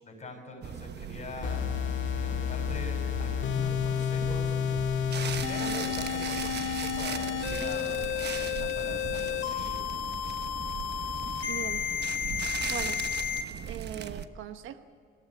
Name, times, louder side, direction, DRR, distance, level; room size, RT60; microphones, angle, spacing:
voice 1, 0.0-4.5 5.3-9.8, left 1 dB, 35° left, 1 dB, 7.0 m, -43 dB
sound 1, 0.6-14.3, right 7 dB, 55° right, 1.1 m, -38 dB
sound 2, 1.4-13.4, left 9 dB, 70° left, 2.1 m, -31 dB
voice 2, 11.5-11.8 12.7-13.0 13.6-14.8, right 10 dB, 80° right, 10 dB, 1.1 m, -39 dB
22.5 x 16.5 x 9.8 m, 2.2 s
cardioid pair, 90°, 20 cm